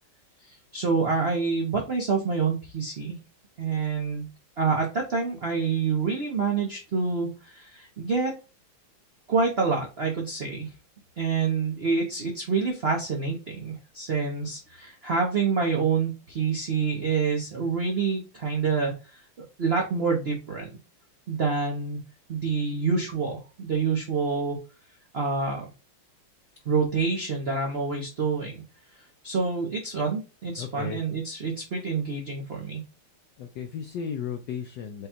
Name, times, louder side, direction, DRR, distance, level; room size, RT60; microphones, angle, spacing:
voice 1, 0.5-3.2 3.6-4.3 4.6-8.3 9.3-10.7 11.2-19.0 19.6-20.8 21.3-22.0 22.3-24.6 25.1-25.7 26.6-28.6 29.2-32.8, right 5 dB, 50° right, 0 dB, 0.7 m, -27 dB
voice 2, 30.6-31.0 33.4-35.1, left 7 dB, 70° left, 5 dB, 1.1 m, -34 dB
5.2 x 2.3 x 4.3 m, 0.31 s
omnidirectional pair, 2.3 m